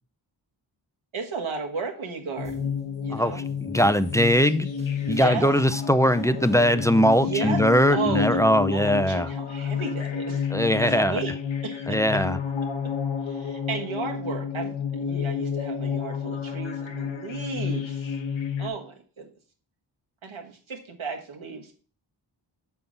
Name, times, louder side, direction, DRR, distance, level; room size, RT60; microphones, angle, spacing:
voice 1, 1.1-2.7 3.0-3.5 5.1-5.5 7.2-7.6 7.9-10.5 10.8-11.3 11.6-12.2 13.3-18.1 18.6-19.3 20.2-21.7, right 5 dB, 90° right, 1.6 m, -34 dB
sound 1, 2.4-18.7, left 7 dB, 75° left, 1.0 m, -30 dB
sound 2, 2.4-11.2, right 3 dB, 15° right, 1.3 m, -49 dB
voice 2, 3.1-4.7 5.1-9.3 10.5-11.2 11.9-12.4, equal, 5° left, 0.4 m, -21 dB
7.0 x 5.7 x 4.0 m
wide cardioid pair, 95°, 47 cm